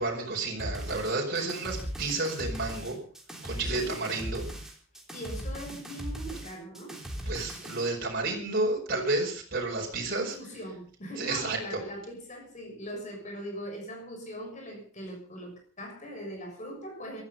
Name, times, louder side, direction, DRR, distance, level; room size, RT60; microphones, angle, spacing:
voice 1, 0.0-3.0 3.4-4.4 7.2-10.4 11.2-11.8, right 2 dB, 40° right, -2 dB, 5.0 m, -31 dB
sound 1, 0.6-7.9, equal, ahead, 3.3 m, -38 dB
voice 2, 5.1-7.0 10.3-17.2, equal, 35° left, 3 dB, 6.6 m, -40 dB
17.5 x 13.5 x 5.4 m, 0.42 s
head